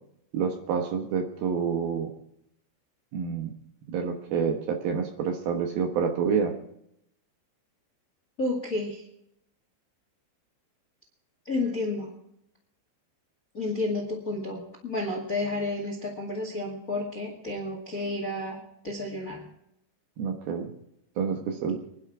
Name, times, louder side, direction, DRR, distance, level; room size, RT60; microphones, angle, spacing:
voice 1, 0.3-2.1 3.1-3.5 3.9-6.5 20.2-20.7 21.2-21.8, right 6 dB, 65° right, 4 dB, 2.7 m, -28 dB
voice 2, 8.4-9.0 11.4-12.1 13.5-19.5, left 2 dB, 35° left, 2 dB, 1.4 m, -31 dB
25.5 x 11.0 x 3.7 m, 0.77 s
omnidirectional pair, 5.2 m